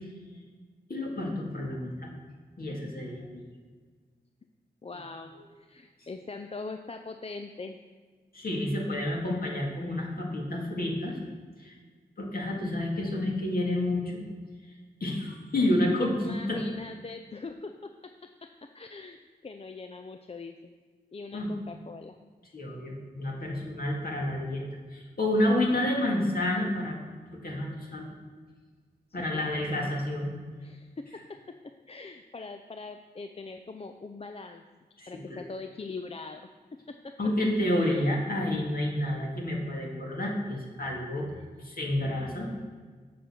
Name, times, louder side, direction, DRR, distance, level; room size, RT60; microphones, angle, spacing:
voice 1, 0.9-2.1 2.6-3.5 5.4-5.5 8.3-11.2 11.6-11.7 12.2-14.2 15.0-16.6 21.3-21.6 22.5-24.6 24.9-27.0 27.4-28.1 29.1-30.3 35.0-35.4 37.2-41.3 41.6-42.5, left 1 dB, 55° left, -1 dB, 2.2 m, -29 dB
voice 2, 4.8-5.3 5.6-7.8 16.2-17.9 18.7-19.2 19.4-20.7 21.1-22.2 27.9-28.1 29.3-29.9 30.6-31.5 31.9-34.6 35.1-36.5 37.0-37.1 37.8-38.1 41.3-41.5, left 3 dB, 35° left, 6 dB, 0.5 m, -42 dB
7.7 x 6.8 x 5.8 m, 1.5 s
cardioid pair, 65°, 18 cm